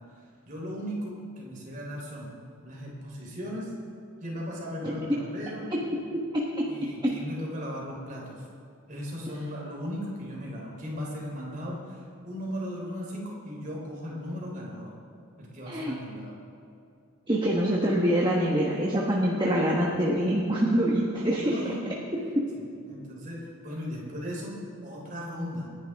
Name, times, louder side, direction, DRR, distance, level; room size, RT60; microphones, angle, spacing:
voice 1, 0.5-2.3 2.6-3.7 4.2-5.7 6.7-8.4 8.9-14.9 15.4-16.4 21.1-21.8 22.5-25.7, equal, 35° right, -3 dB, 3.7 m, -37 dB
voice 2, 4.8-5.2 7.0-7.1 15.7-15.9 17.3-21.5, equal, 20° right, -4 dB, 1.3 m, -25 dB
27.5 x 10.5 x 3.6 m, 2.6 s
head